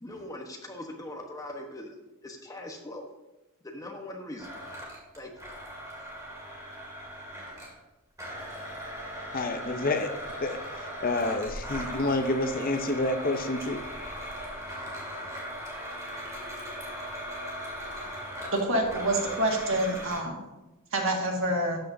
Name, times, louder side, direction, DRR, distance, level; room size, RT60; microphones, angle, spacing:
voice 1, 0.0-1.9 2.2-3.0 3.7-4.5 5.2-5.3, left 1 dB, 15° left, 2 dB, 1.1 m, -40 dB
Domestic sounds home sounds, 4.4-7.8 8.2-20.2, equal, 15° right, 2.3 m, -39 dB
voice 2, 9.3-10.1 10.4-10.6 11.0-13.8, left 2 dB, 40° left, 7 dB, 0.6 m, -28 dB
voice 3, 18.5-20.4 20.9-21.8, right 1 dB, 60° right, 1 dB, 1.9 m, -27 dB
12.5 x 8.5 x 2.7 m, 1.0 s
head